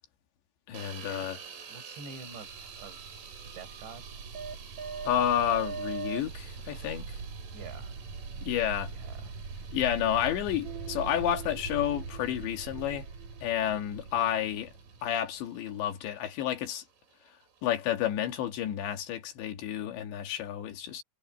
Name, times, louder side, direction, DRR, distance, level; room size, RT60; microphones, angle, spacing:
voice 1, 0.7-1.4 5.1-7.2 8.4-8.9 9.7-13.1 13.4-14.7 15.0-16.8 17.6-21.0, left 11 dB, 75° left, 4.0 m, -30 dB
sound 1, 0.7-18.7, right 7 dB, 85° right, 6.0 m, -51 dB
voice 2, 1.7-3.0 3.5-4.1 7.5-8.0 8.9-9.3, right 4 dB, 70° right, 9.3 m, -47 dB
sound 2, 2.3-16.0, right 5 dB, 45° right, 3.9 m, -41 dB
omnidirectional pair, 5.3 m